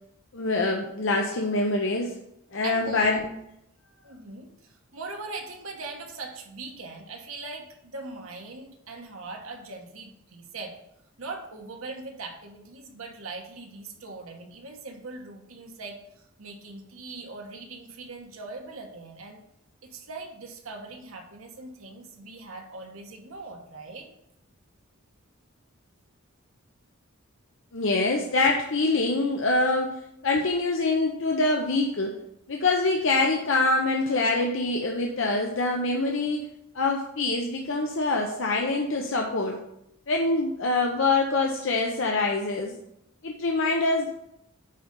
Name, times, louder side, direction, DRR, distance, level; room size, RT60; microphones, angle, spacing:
voice 1, 0.3-2.2 2.5-3.2 27.7-32.2 32.5-36.4 36.7-39.6 40.1-42.8 43.2-44.1, left 3 dB, 60° left, 1 dB, 0.7 m, -25 dB
voice 2, 2.6-3.2 4.0-10.8 11.2-19.4 19.8-24.1, right 3 dB, 75° right, 2 dB, 1.3 m, -40 dB
9.3 x 4.0 x 5.3 m, 0.79 s
head